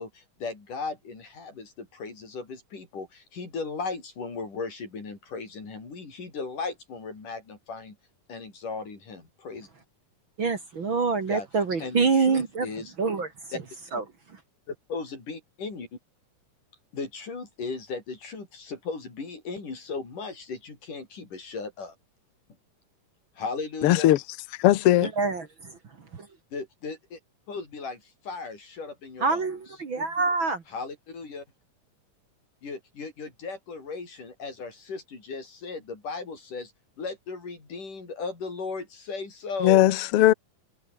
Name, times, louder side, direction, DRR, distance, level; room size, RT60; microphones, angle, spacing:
voice 1, 0.0-8.0 8.3-9.7 11.3-11.5 11.8-12.9 13.5-13.6 14.7-15.9 16.9-21.9 23.4-24.1 26.5-27.2 27.5-29.4 30.7-31.4 32.6-36.7 37.0-39.9, left 4 dB, 65° left, 7.8 m, -36 dB
voice 2, 10.4-12.7 13.0-13.3 13.9-14.0 25.0-26.3 29.2-30.6, right 4 dB, 40° right, 2.5 m, -26 dB
voice 3, 23.8-24.2 24.6-25.1 39.6-40.3, left 14 dB, 85° left, 1.2 m, -18 dB
omnidirectional pair, 3.9 m